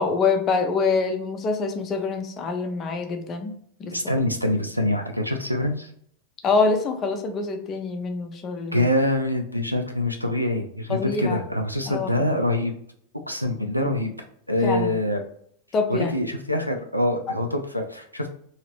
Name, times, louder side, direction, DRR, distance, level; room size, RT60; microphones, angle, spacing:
voice 1, 0.0-3.5 3.8-3.9 6.4-8.8 10.9-11.4 11.9-12.2 14.6-14.9 15.7-16.1, left 4 dB, 30° left, 5 dB, 0.5 m, -25 dB
voice 2, 3.9-5.9 8.7-12.7 13.3-14.1 14.5-15.2 15.9-18.3, left 1 dB, 90° left, 3 dB, 0.4 m, -25 dB
2.9 x 2.8 x 3.0 m, 0.66 s
figure-of-eight pair, 90°, 0 cm